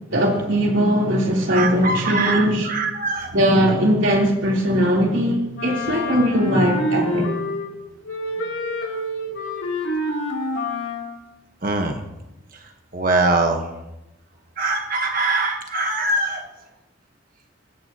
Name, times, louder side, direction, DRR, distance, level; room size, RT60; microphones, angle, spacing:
voice 1, 0.1-2.7 3.3-7.3, equal, 70° right, 3.7 m, -19 dB
voice 2, 1.5-3.3 11.6-12.0 12.9-13.6 14.6-16.4, right 2 dB, 45° right, 1.4 m, -22 dB
Wind instrument woodwind instrument, 5.5-7.8 8.0-11.2, left 1 dB, 65° left, 3.3 m, -27 dB
25.5 x 14.5 x 3.0 m
head